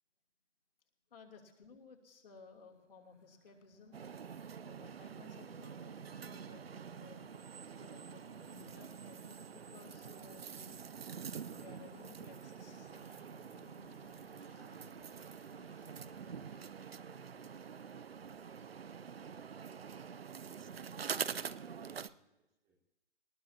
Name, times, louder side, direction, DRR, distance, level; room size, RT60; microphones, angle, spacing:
voice 1, 1.1-4.0 4.6-10.9 11.5-12.9, left 4 dB, 50° left, 0 dB, 2.9 m, -58 dB
sound 1, 2.4-17.7, left 3 dB, 80° left, 1.6 m, -68 dB
sound 2, 3.9-22.1, right 7 dB, 55° right, 0.7 m, -46 dB
voice 2, 14.4-17.2 22.6-22.8, right 3 dB, 5° right, 0 dB, 0.9 m, -71 dB
20.5 x 19.5 x 2.8 m, 1.0 s
figure-of-eight pair, 145°, 35 cm